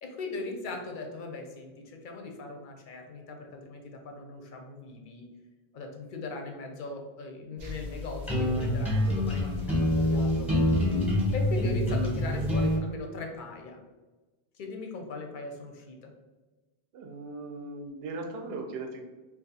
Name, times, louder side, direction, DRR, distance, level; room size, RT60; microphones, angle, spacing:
voice 1, 0.0-5.3 5.7-10.6 11.3-13.8 14.5-16.1, left 3 dB, 60° left, 3 dB, 0.7 m, -39 dB
sound 1, 7.6-12.8, left 1 dB, ahead, 0.9 m, -26 dB
voice 2, 16.9-19.0, right 3 dB, 75° right, 3 dB, 0.8 m, -38 dB
2.6 x 2.3 x 4.0 m, 1.2 s
omnidirectional pair, 1.1 m